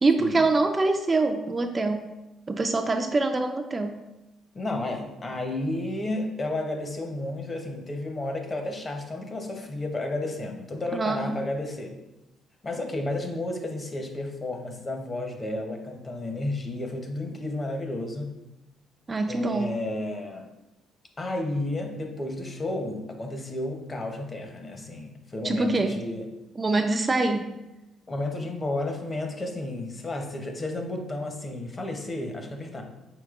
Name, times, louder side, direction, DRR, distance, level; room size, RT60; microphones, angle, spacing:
voice 1, 0.0-2.1 2.5-4.0 10.9-11.4 19.1-19.8 25.4-26.0 26.6-27.5, right 3 dB, 25° right, 6 dB, 0.3 m, -24 dB
voice 2, 4.5-12.0 12.6-18.3 19.3-20.5 21.2-26.2 28.1-32.8, left 2 dB, 30° left, 4 dB, 0.8 m, -32 dB
4.8 x 4.3 x 2.4 m, 0.98 s
cardioid pair, 90°, 0 cm